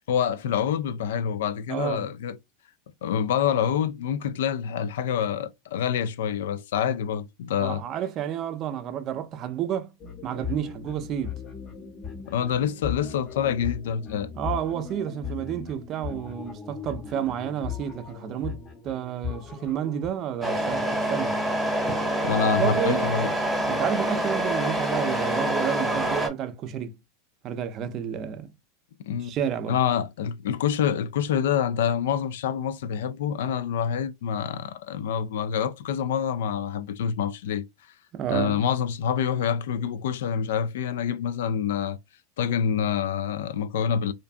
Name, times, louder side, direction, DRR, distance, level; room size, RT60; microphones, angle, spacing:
voice 1, 0.1-2.4 3.0-7.8 12.3-14.3 22.2-23.3 29.0-29.3 29.7-37.6 38.3-42.0 42.4-44.1, left 8 dB, 80° left, 0.3 m, -26 dB
voice 2, 1.7-2.1 7.6-9.9 10.2-11.4 14.4-21.4 22.6-23.0 23.7-27.0 27.4-28.5 29.2-29.8 38.1-38.6, right 9 dB, 40° right, 0.4 m, -30 dB
sound 1, 10.0-20.1, left 8 dB, 30° left, 0.7 m, -38 dB
Truck, 20.4-26.3, right 1 dB, ahead, 1.0 m, -26 dB
2.5 x 2.2 x 2.4 m
supercardioid pair, 130°, 0 cm